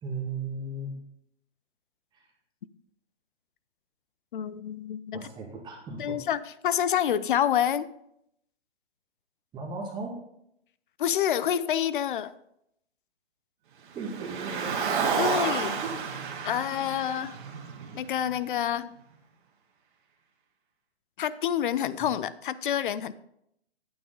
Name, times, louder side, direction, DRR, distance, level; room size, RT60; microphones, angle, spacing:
voice 1, 0.0-1.0 2.1-2.2 5.1-6.2 9.5-10.2 14.0-14.8 15.9-16.0, right 3 dB, 15° right, -1 dB, 1.8 m, -36 dB
voice 2, 4.3-5.3 6.0-7.9 11.0-12.3 15.2-15.8 16.4-17.4 17.9-18.9 21.2-23.1, left 10 dB, 50° left, 16 dB, 0.6 m, -28 dB
Car, 14.0-18.4, right 5 dB, 45° right, 1.8 m, -30 dB
9.1 x 9.1 x 3.9 m, 0.76 s
hypercardioid pair, 145°, 33 cm